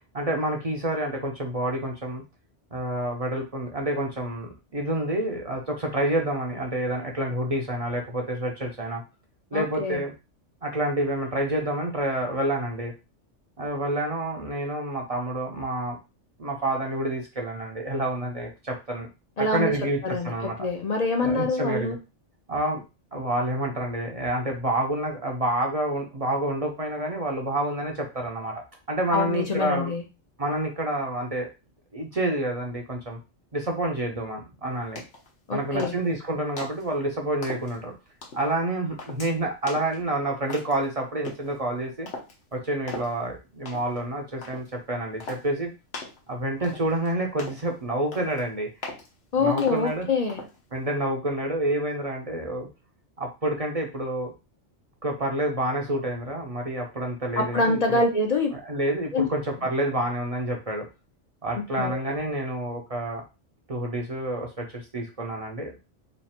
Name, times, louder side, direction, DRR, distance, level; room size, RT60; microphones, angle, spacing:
voice 1, 0.1-2.2 2.7-9.0 9.5-10.1 10.6-12.9 13.6-16.0 16.4-19.1 19.4-20.7 21.2-22.0 22.5-22.8 23.1-29.9 30.4-31.5 31.9-33.2 33.5-35.0 35.5-37.9 38.3-42.1 42.5-45.7 46.3-48.7 49.4-50.1 50.7-52.7 53.2-54.3 55.0-58.0 58.5-60.9 61.4-63.2 63.7-65.7, right 1 dB, 40° right, 1 dB, 0.6 m, -28 dB
voice 2, 9.5-10.0 19.4-19.7 20.0-22.0 29.1-30.0 35.5-36.0 49.3-50.4 57.4-58.5 59.1-59.3 61.7-62.0, left 3 dB, 40° left, 3 dB, 0.6 m, -25 dB
sound 1, 35.0-35.3 35.8-36.2 36.6-36.9 37.4-37.8 38.2-38.5 39.0-39.3 39.7-40.0 40.5-40.8 41.2-41.5 42.1-42.3 42.9-43.1 43.7-44.0 44.4-44.7 45.2-45.5 45.9-46.2 46.6-47.1 47.4-47.7 48.1-48.4 48.8-49.1 49.6-49.9 50.3-50.6, left 3 dB, 70° left, 1.3 m, -38 dB
3.1 x 2.5 x 4.2 m, 0.28 s
omnidirectional pair, 1.2 m